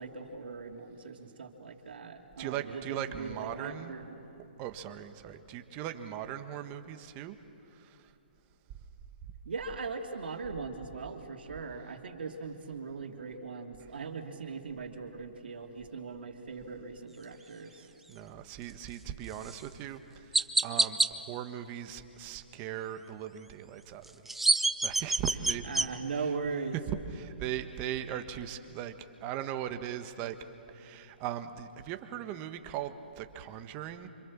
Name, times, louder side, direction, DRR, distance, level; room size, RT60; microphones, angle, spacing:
voice 1, 0.0-4.2 9.4-17.9 25.6-26.8, right 4 dB, 75° right, 3 dB, 2.7 m, -39 dB
voice 2, 2.4-3.9 4.6-7.4 7.7-8.1 17.4-24.1 24.8-25.9 26.1-26.3 27.1-28.9 29.2-30.4 30.7-34.1, right 10 dB, 30° right, 8 dB, 1.4 m, -39 dB
Chirp tweet, 19.4-19.6 20.3-21.1 24.0-25.9, right 2 dB, 5° right, 0.5 m, -26 dB
28.0 x 26.0 x 7.3 m, 3.0 s
hypercardioid pair, 140°, 6 cm